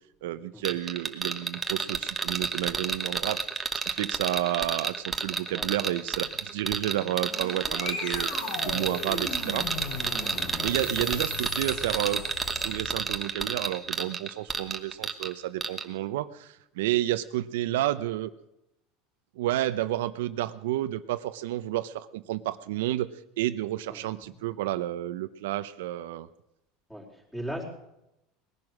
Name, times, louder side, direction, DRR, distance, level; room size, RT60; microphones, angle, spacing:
voice 1, 0.2-3.4 3.8-9.7 10.6-12.2 12.6-18.3 19.4-23.1 23.4-26.3, right 14 dB, 90° right, 12 dB, 0.7 m, -31 dB
sound 1, 0.6-15.3 15.6-15.8, right 5 dB, 15° right, 1.1 m, -30 dB
sound 2, 6.9-13.2, left 3 dB, 75° left, 5.3 m, -37 dB
voice 2, 23.9-24.3 26.9-27.6, equal, 5° left, -1 dB, 4.3 m, -39 dB
19.5 x 11.0 x 6.4 m, 0.85 s
supercardioid pair, 145°, 0 cm